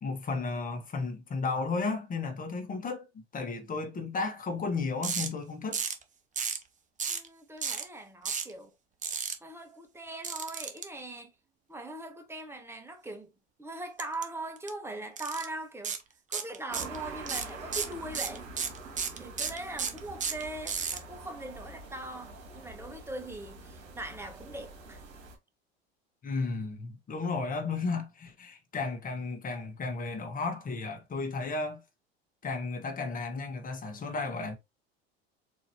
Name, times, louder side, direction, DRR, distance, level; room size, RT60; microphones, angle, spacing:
voice 1, 0.0-3.1 3.3-5.8 26.2-31.8 32.4-34.6, left 4 dB, 25° left, 1.2 m, -33 dB
sound 1, 5.0-5.3 5.7-6.0 6.4-6.6 7.0-7.3 7.6-7.8 8.2-8.5 9.0-9.3 10.2-10.8 14.0-14.2 14.6-14.7 15.2-15.5 15.8-16.0 16.3-17.0 17.3-21.0, right 6 dB, 25° right, 0.8 m, -32 dB
voice 2, 7.1-8.7 9.4-11.3 11.7-13.3 13.6-16.0 16.3-18.5 19.2-25.0, right 2 dB, 10° right, 1.1 m, -41 dB
sound 2, 16.7-25.4, right 3 dB, 55° right, 2.1 m, -46 dB
4.1 x 3.0 x 2.8 m
hypercardioid pair, 85°, 31 cm